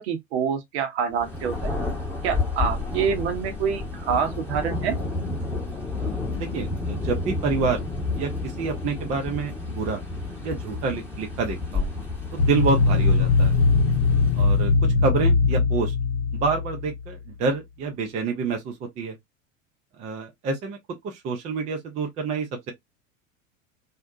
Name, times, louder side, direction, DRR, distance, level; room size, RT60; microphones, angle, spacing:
voice 1, 0.0-1.7 2.2-5.0, right 7 dB, 55° right, 0.8 m, -26 dB
Thunder, 1.2-14.8, left 3 dB, 5° left, 1.0 m, -31 dB
voice 2, 5.9-7.8 8.1-10.0 10.4-11.9 12.3-13.6 14.3-15.9 16.3-19.1 20.0-20.8 21.0-22.7, right 4 dB, 20° right, 0.4 m, -28 dB
sound 1, 12.4-17.1, left 4 dB, 60° left, 0.6 m, -20 dB
2.5 x 2.1 x 2.4 m
figure-of-eight pair, 85°, 40 cm